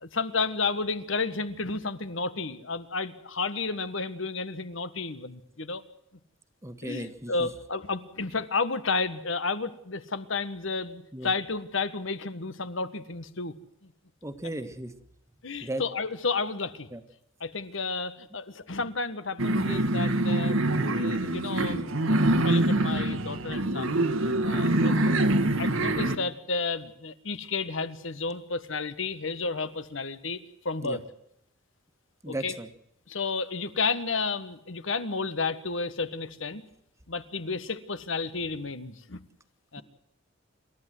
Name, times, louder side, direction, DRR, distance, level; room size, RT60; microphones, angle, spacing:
voice 1, 0.0-5.8 6.8-13.6 13.8-13.9 15.4-16.9 17.4-24.0 24.4-24.9 25.6-31.0 32.3-32.5 33.1-36.6 37.1-39.2 39.7-39.8, left 4 dB, 70° left, 13 dB, 1.5 m, -32 dB
voice 2, 6.6-7.5 11.1-11.3 14.2-14.9 15.6-15.8 16.9-17.0 24.7-24.9 30.8-31.0 32.2-32.7, right 1 dB, 15° right, 8 dB, 1.6 m, -36 dB
sound 1, 19.4-26.1, right 1 dB, 80° right, 1.8 m, -25 dB
27.5 x 13.5 x 7.9 m, 0.76 s
head